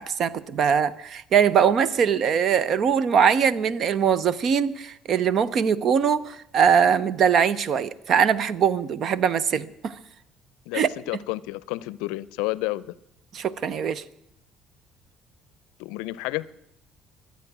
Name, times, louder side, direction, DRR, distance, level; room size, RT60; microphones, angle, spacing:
voice 1, 0.0-9.9 10.7-10.9 13.3-14.0, right 7 dB, 55° right, 0.8 m, -22 dB
voice 2, 10.7-12.9 15.8-16.5, left 19 dB, 80° left, 0.5 m, -30 dB
24.0 x 8.3 x 6.1 m
supercardioid pair, 70°, 0 cm